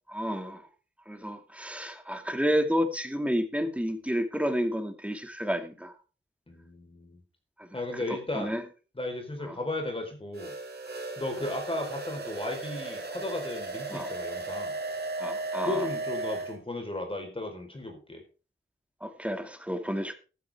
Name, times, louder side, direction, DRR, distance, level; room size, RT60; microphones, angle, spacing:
voice 1, 0.1-0.6 1.1-5.9 7.6-7.7 8.3-8.6 9.4-9.6 13.9-14.1 15.2-15.9 19.0-20.1, equal, 5° right, 6 dB, 2.4 m, -30 dB
voice 2, 6.5-7.2 7.7-8.5 8.9-10.5 11.2-14.8 15.6-18.2, left 2 dB, 30° left, 3 dB, 4.4 m, -35 dB
sound 1, 10.3-16.6, right 3 dB, 55° right, 3.8 m, -35 dB
14.5 x 13.5 x 3.6 m, 0.34 s
wide cardioid pair, 85°, 20 cm